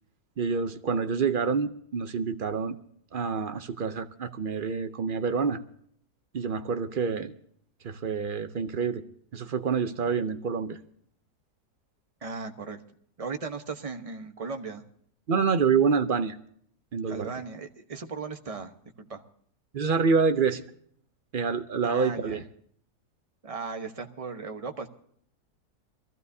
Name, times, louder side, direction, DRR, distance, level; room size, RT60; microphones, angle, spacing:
voice 1, 0.4-2.8 3.1-5.6 6.3-7.3 7.8-9.0 9.3-10.8 15.3-16.4 16.9-17.3 19.7-20.6 21.3-22.4, right 5 dB, 55° right, 9 dB, 0.6 m, -27 dB
voice 2, 12.2-12.8 13.2-14.8 17.1-18.7 19.0-19.2 21.8-22.4 23.4-24.9, right 4 dB, 25° right, 5 dB, 0.8 m, -37 dB
23.0 x 15.0 x 2.7 m, 0.64 s
omnidirectional pair, 1.7 m